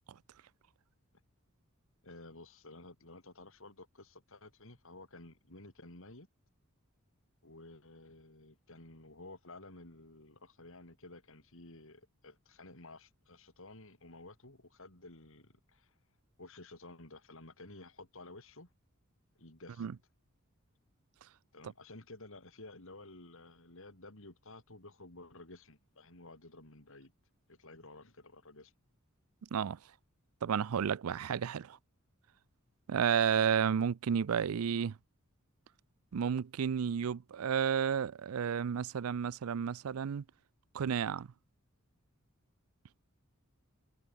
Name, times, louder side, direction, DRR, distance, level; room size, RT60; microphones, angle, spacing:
voice 1, 2.0-6.3 7.4-15.9 16.4-18.7 19.4-19.9 21.5-27.1 27.5-28.7, left 2 dB, 65° left, 4.7 m, -53 dB
voice 2, 30.4-31.8 32.9-35.0 36.1-40.2 40.7-41.3, right 7 dB, 85° right, 0.4 m, -31 dB
head